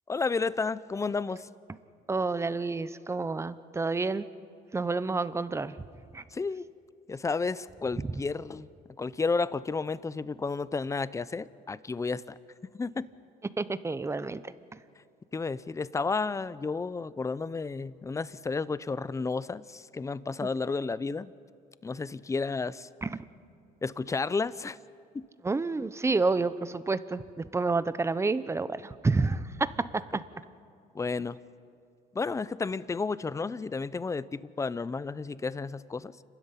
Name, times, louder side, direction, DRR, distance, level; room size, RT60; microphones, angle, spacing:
voice 1, 0.1-1.5 6.3-6.6 7.1-8.7 9.0-12.4 12.7-13.1 15.3-21.3 21.8-22.9 23.8-24.8 25.1-25.2 30.9-31.4 32.1-36.1, left 4 dB, 20° left, 17 dB, 0.6 m, -32 dB
voice 2, 2.1-4.3 4.7-5.8 6.1-6.2 8.1-8.2 13.6-14.4 23.0-23.2 25.4-29.7 30.1-30.2, right 3 dB, 15° right, 15 dB, 0.8 m, -29 dB
29.0 x 13.0 x 9.9 m, 2.3 s
cardioid pair, 110°, 17 cm